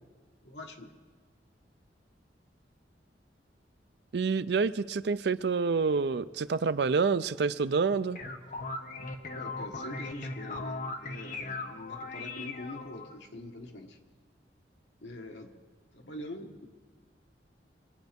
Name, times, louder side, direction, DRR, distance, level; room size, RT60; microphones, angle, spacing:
voice 1, 0.4-0.9 9.4-14.0 15.0-15.5 15.9-16.7, left 1 dB, 80° left, 2 dB, 1.6 m, -44 dB
voice 2, 4.1-8.2, right 4 dB, 65° right, 15 dB, 0.4 m, -27 dB
sound 1, 7.9-13.1, left 3 dB, 50° left, 1.0 m, -39 dB
24.0 x 9.2 x 5.3 m, 1.5 s
head